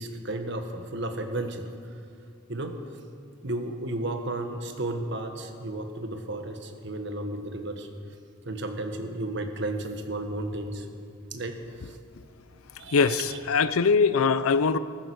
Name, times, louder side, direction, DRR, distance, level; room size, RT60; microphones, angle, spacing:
voice 1, 0.0-1.6 2.5-2.7 3.4-7.9 8.4-10.9 11.3-11.6 11.8-11.9 12.8-13.4, right 2 dB, 55° right, 6 dB, 1.4 m, -33 dB
voice 2, 12.9-14.8, left 5 dB, 80° left, 14 dB, 0.6 m, -22 dB
14.5 x 14.5 x 6.4 m, 2.3 s
head